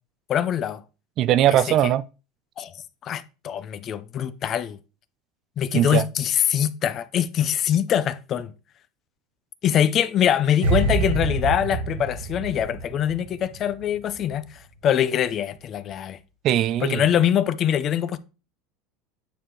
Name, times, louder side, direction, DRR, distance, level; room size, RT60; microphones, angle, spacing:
voice 1, 0.3-0.8 1.8-1.9 2.6-2.7 3.0-4.8 5.6-8.5 9.6-14.4 14.8-16.2 16.8-18.2, left 9 dB, 30° left, 0.6 m, -23 dB
voice 2, 1.2-2.0 5.7-6.1 16.4-17.1, right 12 dB, 40° right, 0.4 m, -20 dB
sound 1, 10.6-13.8 14.1-14.3, right 3 dB, 85° right, 1.9 m, -26 dB
9.0 x 4.7 x 3.8 m
supercardioid pair, 155°, 0 cm